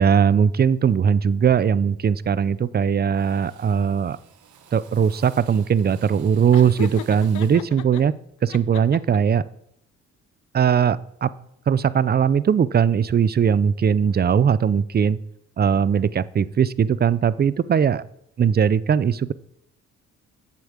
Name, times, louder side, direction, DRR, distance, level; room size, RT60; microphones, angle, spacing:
voice 1, 0.0-4.2 4.7-8.1 8.4-9.4 10.5-11.3 11.7-15.2 15.6-18.0 18.4-19.3, right 7 dB, 35° right, 18 dB, 0.5 m, -19 dB
Drill, 2.2-2.8 3.1-7.7, right 8 dB, 75° right, 1.5 m, -51 dB
Laughter, 6.5-8.0 8.5-9.4, left 13 dB, 80° left, 0.7 m, -36 dB
8.5 x 7.9 x 7.3 m, 0.77 s
cardioid pair, 90°, 30 cm